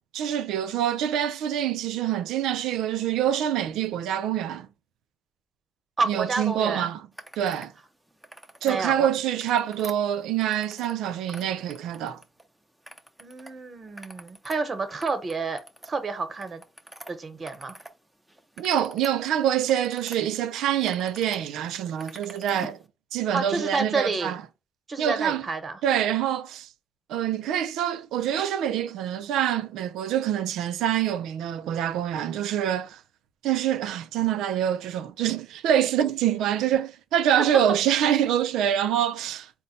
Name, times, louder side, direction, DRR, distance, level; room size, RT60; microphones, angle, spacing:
voice 1, 0.1-4.7 6.1-7.0 7.4-7.7 8.6-12.2 18.6-22.8 23.1-24.4 25.0-25.4 25.8-26.7 27.1-33.0 33.4-39.5, right 10 dB, 90° right, 0.4 m, -25 dB
voice 2, 6.0-6.9 8.6-9.1 13.2-15.6 15.9-16.6 17.1-17.8 23.3-24.3 24.9-25.8, right 4 dB, 35° right, 1.0 m, -29 dB
sound 1, 7.1-7.7 8.1-8.8 9.2-11.0 11.2-12.4 12.8-13.5 13.8-18.0 18.3-20.2 20.6-21.4 21.7-22.8, right 1 dB, 5° right, 0.6 m, -46 dB
4.0 x 2.2 x 4.0 m
cardioid pair, 90°, 0 cm